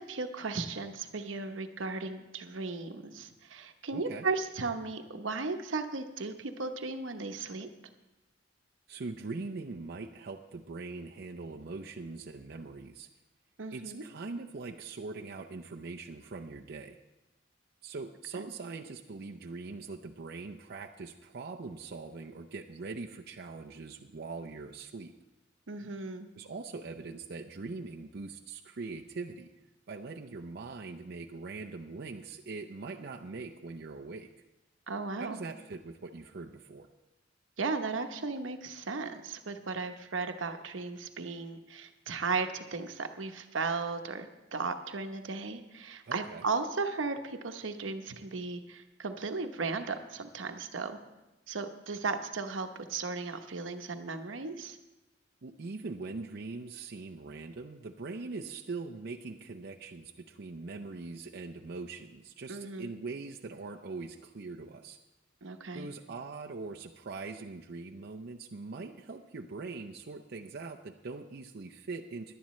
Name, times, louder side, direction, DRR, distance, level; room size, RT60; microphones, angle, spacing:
voice 1, 0.0-7.7 13.6-14.0 18.3-18.5 25.7-26.3 34.9-35.4 37.6-51.0 51.5-54.8 62.5-62.9 65.4-65.9, right 4 dB, 85° right, 7 dB, 0.9 m, -36 dB
voice 2, 3.9-4.3 8.9-13.1 13.7-17.0 17.8-25.1 26.4-29.5 29.9-34.3 35.2-36.9 46.1-46.5 55.4-65.0 65.7-72.3, right 3 dB, 55° right, 2 dB, 0.6 m, -42 dB
17.5 x 11.0 x 3.2 m, 1.0 s
head